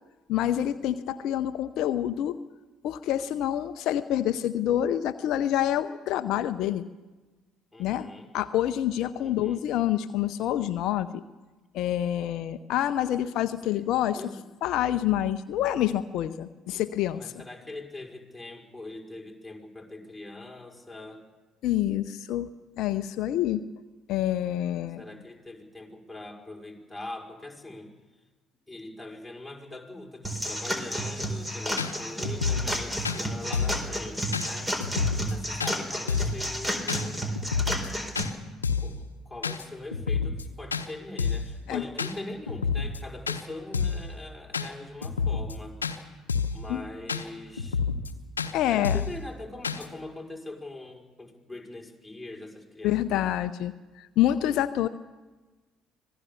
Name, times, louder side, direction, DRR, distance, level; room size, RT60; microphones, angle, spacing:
voice 1, 0.3-2.4 2.8-6.8 7.8-8.1 8.3-11.2 11.7-14.2 14.6-17.3 21.6-22.5 22.8-23.7 24.1-25.0 41.7-41.8 46.7-46.8 48.5-49.0 52.8-54.9, left 12 dB, 60° left, 12 dB, 0.6 m, -27 dB
voice 2, 7.7-8.3 9.2-9.6 13.7-13.8 14.1-14.4 17.1-21.2 25.0-27.9 28.7-34.8 35.1-37.2 38.8-45.8 46.5-47.8 48.7-53.3, left 2 dB, ahead, -1 dB, 5.2 m, -42 dB
sound 1, 30.2-38.2, equal, 15° right, 4.2 m, -31 dB
sound 2, 31.2-31.3 31.8-31.9 32.2-32.8 33.0-33.2 33.5-33.8 34.3-34.5 34.8-35.3 35.6-35.7 36.1-36.4 36.9-37.0 37.4-37.9 38.2-38.3 38.6-38.9 39.4-39.6 39.9-40.4 40.7-40.9 41.2-41.5 42.0-42.1 42.5-43.0 43.3-43.4 43.7-44.0 44.5-44.7 45.0-45.5 45.8-46.0 46.3-46.6 47.1-47.2 47.6-48.1 48.4-48.5 48.8-49.2 49.6-49.9, left 5 dB, 90° left, 0.9 m, -28 dB
25.5 x 18.5 x 7.0 m, 1.2 s
hypercardioid pair, 55°, 0 cm